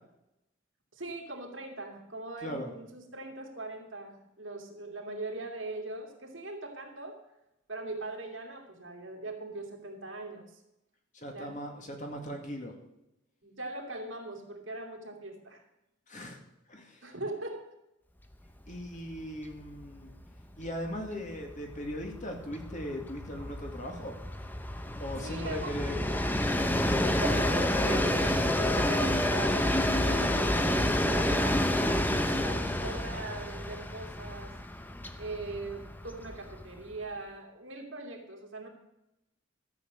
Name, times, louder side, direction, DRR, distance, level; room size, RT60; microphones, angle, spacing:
voice 1, 0.9-7.2 7.7-10.6 11.3-11.5 13.4-15.6 17.0-17.7 25.1-26.0 27.1-34.5 35.1-38.7, right 2 dB, 70° right, 1 dB, 2.6 m, -41 dB
voice 2, 11.1-12.7 16.1-16.4 16.7-17.1 18.7-20.1 20.6-24.1 25.0-26.1, equal, 40° left, 2 dB, 2.2 m, -39 dB
Train, 18.7-18.8 19.1-19.2 19.5-36.9, left 1 dB, 10° left, 0.8 m, -29 dB
13.0 x 7.8 x 6.3 m, 0.89 s
head